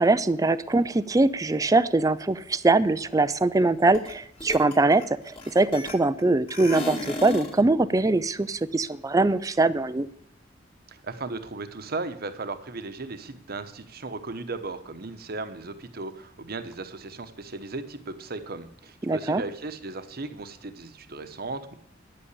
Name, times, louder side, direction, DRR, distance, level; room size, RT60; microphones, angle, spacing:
voice 1, 0.0-10.1 19.0-19.4, right 2 dB, 20° right, 14 dB, 0.4 m, -22 dB
sound 1, 3.9-4.1 4.4-6.2 6.5-7.6, left 2 dB, 30° left, 2.1 m, -34 dB
voice 2, 10.9-21.8, right 3 dB, 55° right, 10 dB, 1.1 m, -36 dB
10.5 x 8.7 x 8.3 m, 0.72 s
head